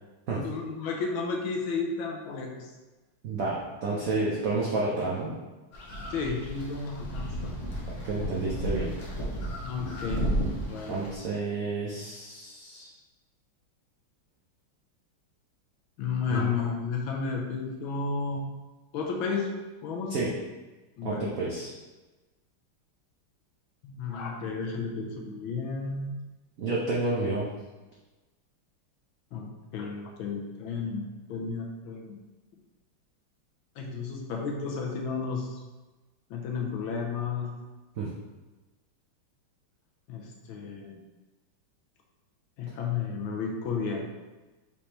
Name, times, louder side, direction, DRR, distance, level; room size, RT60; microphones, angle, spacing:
voice 1, 0.3-2.7 6.1-7.6 9.6-10.2 10.7-11.0 16.0-18.4 18.9-19.5 19.8-20.2 21.0-21.3 23.8-26.1 29.3-31.0 31.3-32.2 33.8-35.6 36.3-37.5 40.1-41.0 42.6-44.0, left 5 dB, 75° left, 1 dB, 1.4 m, -32 dB
voice 2, 3.2-5.3 8.0-8.9 10.9-12.9 16.3-16.5 20.1-20.3 21.0-21.7 26.6-27.5 38.0-38.1, right 3 dB, 85° right, -5 dB, 0.7 m, -30 dB
sound 1, 5.7-11.2, equal, 55° left, 0.8 m, -33 dB
5.2 x 3.3 x 2.9 m, 1.2 s
omnidirectional pair, 2.4 m